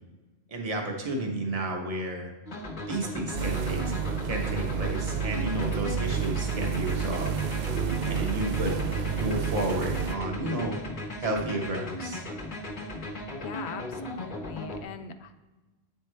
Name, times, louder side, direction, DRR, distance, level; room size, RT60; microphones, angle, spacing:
voice 1, 0.5-2.3 2.9-3.8 4.2-7.3 7.7-8.8 9.2-10.8 11.2-12.2, right 1 dB, 35° right, 1 dB, 1.0 m, -32 dB
sound 1, 2.5-14.8, left 1 dB, 55° left, 1.0 m, -37 dB
sound 2, 3.3-10.2, right 7 dB, 55° right, 0.5 m, -30 dB
voice 2, 13.4-15.3, left 7 dB, 85° left, 8 dB, 0.9 m, -41 dB
8.8 x 4.6 x 3.3 m, 1.2 s
omnidirectional pair, 1.1 m